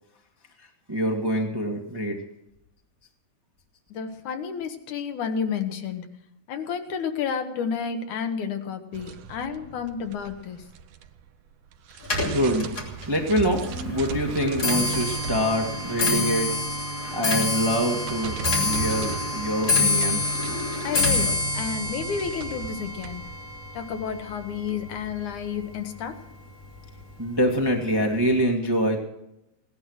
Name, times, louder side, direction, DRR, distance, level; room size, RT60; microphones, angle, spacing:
voice 1, 0.6-2.3 12.2-16.8 17.1-20.2 21.2-21.3 27.2-29.0, equal, 20° right, 1 dB, 0.6 m, -25 dB
voice 2, 3.9-6.1 6.5-10.6 20.8-23.2 23.7-26.2, left 6 dB, 75° left, 6 dB, 2.7 m, -31 dB
sound 1, 8.9-11.3 11.7-24.7, right 6 dB, 70° right, 1.9 m, -37 dB
Clock, 12.0-25.4 25.7-26.2 27.0-27.1 27.4-27.8 28.0-28.1, left 2 dB, 30° left, 3.3 m, -27 dB
17.5 x 11.5 x 6.4 m, 0.86 s
omnidirectional pair, 3.5 m